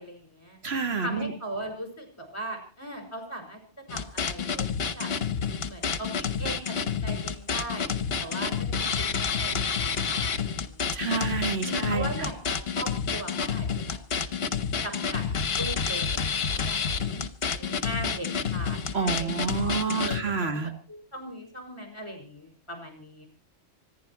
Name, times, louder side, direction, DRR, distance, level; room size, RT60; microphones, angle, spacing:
voice 1, 0.0-0.6 1.0-3.6 3.9-5.1 5.6-7.9 8.2-11.2 11.7-14.5 14.8-15.2 15.5-23.3, right 1 dB, 20° left, 4 dB, 5.7 m, -39 dB
voice 2, 0.6-1.3 10.9-12.1 18.9-20.7, right 5 dB, 55° right, 7 dB, 1.9 m, -28 dB
sound 1, 3.9-20.2, left 6 dB, 55° left, 1.3 m, -29 dB
26.0 x 10.5 x 4.7 m, 0.41 s
omnidirectional pair, 1.3 m